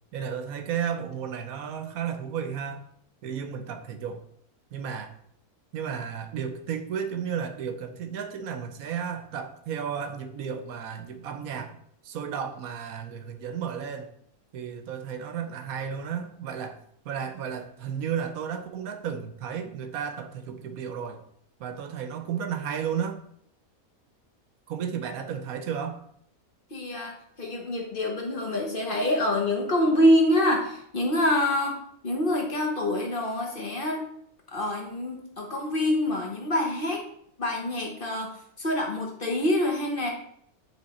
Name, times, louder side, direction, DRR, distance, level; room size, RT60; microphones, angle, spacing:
voice 1, 0.1-2.8 3.2-4.2 4.7-5.2 5.7-11.7 12.0-14.1 14.5-21.2 21.6-23.2 24.7-26.0, right 7 dB, 75° right, 1.1 m, -33 dB
voice 2, 26.7-34.1 34.5-37.0 37.4-40.1, left 1 dB, 40° left, 1.3 m, -26 dB
9.2 x 3.5 x 4.2 m
omnidirectional pair, 1.6 m